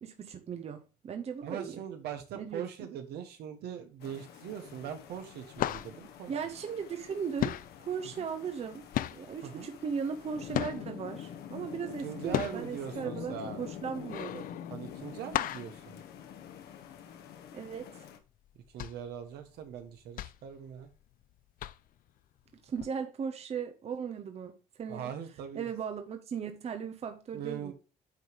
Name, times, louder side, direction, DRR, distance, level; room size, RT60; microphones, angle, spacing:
voice 1, 0.0-1.8 2.3-2.7 6.3-14.5 15.2-15.3 17.5-18.1 22.6-25.2 25.5-27.7, right 6 dB, 40° right, 0.9 m, -37 dB
voice 2, 1.4-6.3 8.2-8.3 9.4-9.7 12.0-13.6 14.7-16.0 18.7-20.9 24.9-25.7 27.3-27.7, right 9 dB, 75° right, 1.5 m, -41 dB
sound 1, 4.0-18.2, left 9 dB, 75° left, 1.3 m, -46 dB
sound 2, 4.5-4.9 5.2-7.1 7.4-11.1 11.6-16.9 17.2-17.3 17.7-17.9 18.4-21.2 21.6-22.1 22.8-22.9, left 13 dB, 55° left, 0.4 m, -36 dB
9.1 x 3.2 x 5.3 m
cardioid pair, 110°, 17 cm